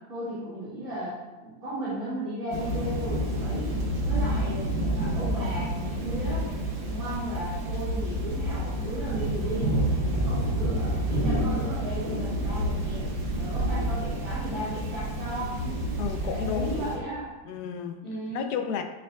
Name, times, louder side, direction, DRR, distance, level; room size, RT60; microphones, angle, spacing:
voice 1, 0.1-3.7 4.0-6.5 6.8-13.1 13.4-15.8 16.2-17.3 18.0-18.5, right 1 dB, 60° right, -12 dB, 2.8 m, -35 dB
Thunder / Rain, 2.5-17.0, right 1 dB, 80° right, 1.5 m, -29 dB
voice 2, 16.0-16.9 17.5-18.0 18.3-18.8, left 7 dB, 75° left, 6 dB, 1.1 m, -32 dB
9.2 x 4.9 x 2.3 m, 1.1 s
omnidirectional pair, 1.7 m